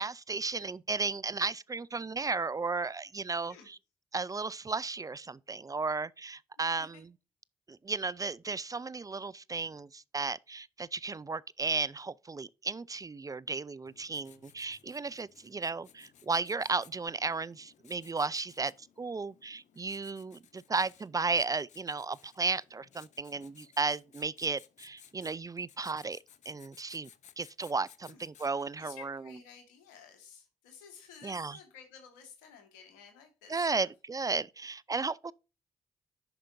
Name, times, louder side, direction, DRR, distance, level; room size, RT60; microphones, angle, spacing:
voice 1, 0.0-3.8 4.1-7.1 7.7-26.2 26.5-27.1 27.4-29.2 31.2-31.6 33.5-35.3, right 4 dB, 25° right, 0.4 m, -34 dB
Writing, 13.9-28.8, left 9 dB, 60° left, 0.7 m, -60 dB
voice 2, 28.6-33.9, left 7 dB, 90° left, 1.7 m, -53 dB
10.5 x 5.0 x 2.6 m
hypercardioid pair, 45°, 14 cm